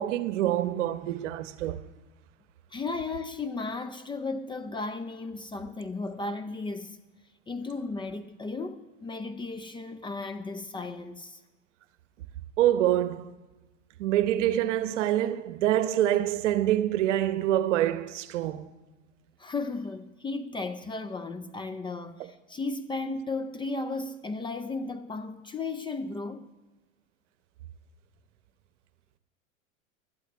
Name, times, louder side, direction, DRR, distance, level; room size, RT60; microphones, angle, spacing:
voice 1, 0.0-1.8 12.6-13.3 14.0-18.7, right 12 dB, 65° right, 1.0 m, -26 dB
voice 2, 2.7-7.0 7.5-11.4 19.4-26.5, left 3 dB, 10° left, 0.5 m, -35 dB
20.5 x 12.5 x 3.5 m
hypercardioid pair, 95°, 39 cm